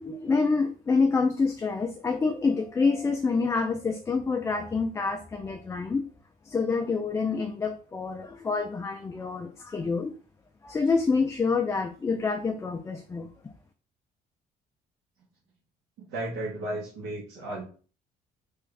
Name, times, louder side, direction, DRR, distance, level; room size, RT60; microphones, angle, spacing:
voice 1, 0.0-6.1 6.5-10.1 10.6-13.5, left 4 dB, 15° left, 5 dB, 0.3 m, -27 dB
voice 2, 16.0-17.6, right 1 dB, 85° right, -5 dB, 1.0 m, -34 dB
3.5 x 2.3 x 3.2 m, 0.40 s
cardioid pair, 110°, 17 cm